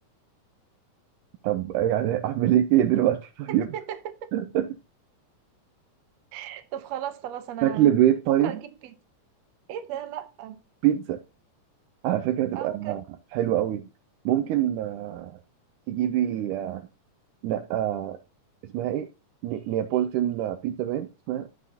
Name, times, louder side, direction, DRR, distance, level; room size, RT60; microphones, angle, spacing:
voice 1, 1.4-3.7 4.3-4.7 7.6-8.6 10.8-11.2 12.0-13.0 13.3-13.9 14.3-15.4 15.9-16.9 17.4-18.2 18.6-19.1 19.4-21.5, right 12 dB, 80° right, 2.0 m, -24 dB
voice 2, 3.5-4.3 6.3-7.9 8.3-8.9 9.7-10.6 12.5-13.0, right 10 dB, 65° right, 2.0 m, -36 dB
13.0 x 6.5 x 2.8 m
omnidirectional pair, 3.7 m